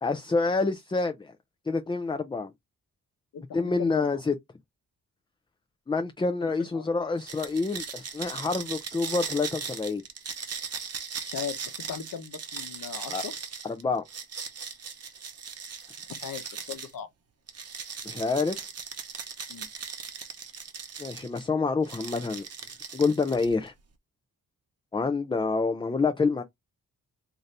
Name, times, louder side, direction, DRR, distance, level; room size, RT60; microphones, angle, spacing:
voice 1, 0.0-1.3 1.7-2.5 3.5-4.3 5.9-10.0 13.1-13.2 13.6-14.0 18.0-18.7 21.0-22.5 22.9-23.7 24.9-26.4, left 4 dB, 15° left, 0.3 m, -27 dB
voice 2, 3.3-4.2 6.4-6.9 11.3-13.3 16.1-17.1 19.5-19.7, left 8 dB, 70° left, 0.9 m, -39 dB
sound 1, 7.2-16.9 17.5-21.4 21.8-23.7, right 6 dB, 45° right, 0.8 m, -38 dB
3.9 x 2.7 x 3.2 m
wide cardioid pair, 160°, 35 cm